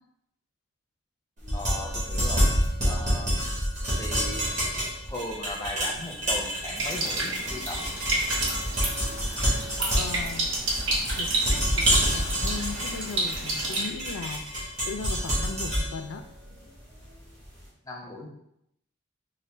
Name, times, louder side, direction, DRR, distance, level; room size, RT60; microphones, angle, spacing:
sound 1, 1.4-17.5, equal, 35° right, 1.3 m, -28 dB
voice 1, 1.5-3.3 4.0-4.4 5.1-7.8 17.8-18.3, left 1 dB, 15° left, -1 dB, 0.5 m, -37 dB
sound 2, 6.8-13.9, right 2 dB, 70° right, 0.8 m, -30 dB
voice 2, 9.9-10.5 11.2-16.2, left 4 dB, 80° left, 7 dB, 0.4 m, -38 dB
4.1 x 2.1 x 3.2 m, 0.78 s
head